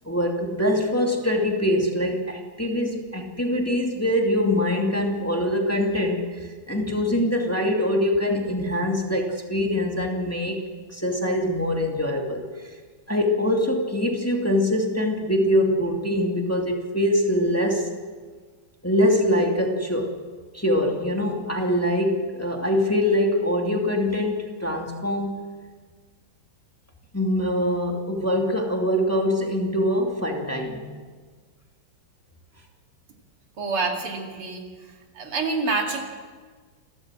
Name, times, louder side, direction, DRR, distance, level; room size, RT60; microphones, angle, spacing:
voice 1, 0.0-10.6 10.9-12.7 13.1-17.9 18.8-20.1 20.5-25.5 27.1-30.8, left 1 dB, 5° left, 1 dB, 2.4 m, -23 dB
voice 2, 33.6-34.7 35.1-36.0, right 3 dB, 85° right, 2 dB, 3.3 m, -27 dB
29.0 x 13.5 x 7.6 m, 1.5 s
omnidirectional pair, 2.3 m